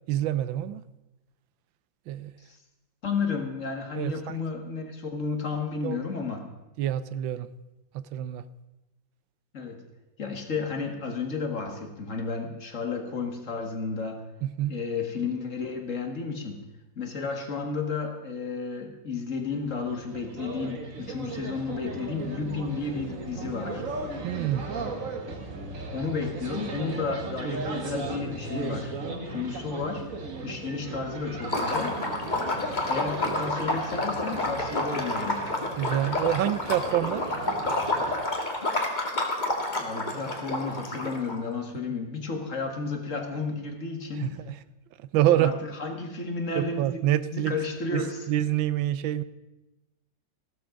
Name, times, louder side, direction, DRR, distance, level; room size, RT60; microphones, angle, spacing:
voice 1, 0.1-0.8 2.1-2.3 3.9-4.1 5.8-6.0 6.8-7.5 7.9-8.4 14.4-14.8 24.2-24.7 35.8-37.3 44.2-44.6 45.1-45.6 46.6-47.5 47.9-49.2, right 12 dB, 85° right, 15 dB, 1.4 m, -26 dB
voice 2, 3.0-6.4 9.5-9.8 10.2-14.2 14.7-16.6 17.0-23.8 25.9-28.9 29.3-30.1 30.4-32.0 32.9-35.4 39.8-44.3 45.4-46.8 47.3-48.3, left 4 dB, 40° left, 4 dB, 2.0 m, -32 dB
sound 1, 19.4-38.1, right 3 dB, 45° right, 1.9 m, -37 dB
Liquid, 31.4-41.3, left 2 dB, 25° left, 1.9 m, -29 dB
15.0 x 13.0 x 5.2 m, 1.0 s
omnidirectional pair, 2.0 m